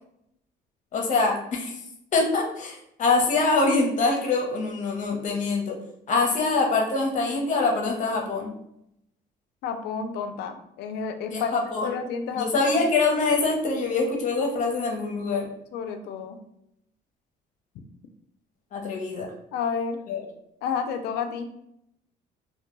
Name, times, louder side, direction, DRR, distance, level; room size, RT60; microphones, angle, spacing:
voice 1, 0.9-1.7 2.1-5.8 6.1-8.5 11.3-11.9 12.4-15.4 18.7-19.3 20.1-20.3, left 3 dB, 45° left, 1 dB, 0.7 m, -24 dB
voice 2, 9.6-11.5 11.8-12.5 12.7-12.9 15.7-16.4 19.5-20.0 20.6-21.5, left 6 dB, 75° left, 7 dB, 0.4 m, -30 dB
2.2 x 2.2 x 3.0 m, 0.77 s
cardioid pair, 110°, 17 cm